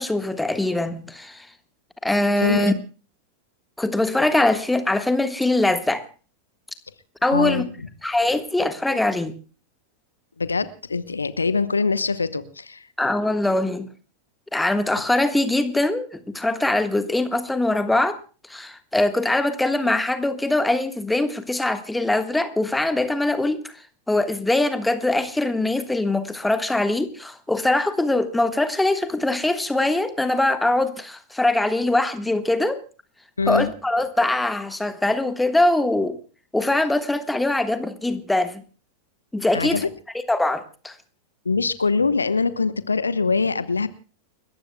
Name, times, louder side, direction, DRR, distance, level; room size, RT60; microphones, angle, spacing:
voice 1, 0.0-1.5 2.0-2.7 3.8-6.0 7.2-7.6 8.0-9.4 13.0-13.9 14.5-16.1 16.3-18.2 18.5-23.6 24.1-32.8 33.5-36.2 36.5-38.6 39.3-39.8 40.3-40.9, left 2 dB, 5° left, 10 dB, 1.4 m, -22 dB
voice 2, 2.4-2.7 7.3-7.7 10.4-12.9 33.4-33.7 39.5-39.9 41.4-43.9, left 4 dB, 75° left, 15 dB, 0.9 m, -23 dB
30.0 x 14.5 x 2.2 m, 0.37 s
figure-of-eight pair, 90°, 0 cm